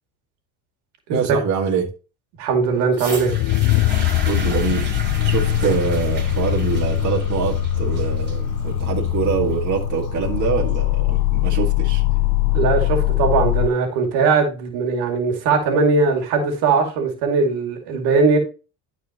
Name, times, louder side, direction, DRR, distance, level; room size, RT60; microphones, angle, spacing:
voice 1, 1.1-1.9 4.3-12.0, right 6 dB, 45° right, 2.1 m, -24 dB
voice 2, 2.4-3.3 12.5-18.4, right 4 dB, 80° right, 2.4 m, -19 dB
sound 1, 2.9-10.9 11.7-11.8, right 3 dB, 25° right, 3.1 m, -35 dB
sound 2, 3.2-13.7, left 13 dB, 55° left, 0.5 m, -21 dB
12.0 x 4.5 x 3.0 m
supercardioid pair, 90°, 39 cm